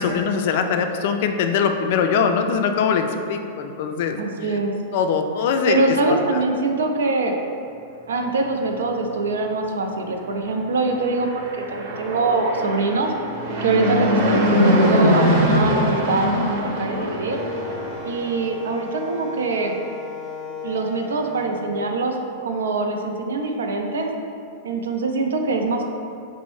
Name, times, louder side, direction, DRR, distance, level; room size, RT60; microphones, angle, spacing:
voice 1, 0.0-4.2 4.9-5.8 6.1-6.4, left 6 dB, 60° left, 5 dB, 0.3 m, -22 dB
voice 2, 4.2-4.7 5.6-7.3 8.1-13.1 13.6-16.4 16.8-17.4 18.0-19.8 20.6-24.1 24.6-25.9, right 3 dB, 90° right, 3 dB, 0.4 m, -23 dB
Fixed-wing aircraft airplane, 10.9-18.3, equal, 55° right, 0.7 m, -22 dB
Wind instrument woodwind instrument, 17.3-21.9, left 2 dB, 20° right, 0.5 m, -35 dB
5.1 x 2.1 x 3.1 m, 2.5 s
hypercardioid pair, 125°, 0 cm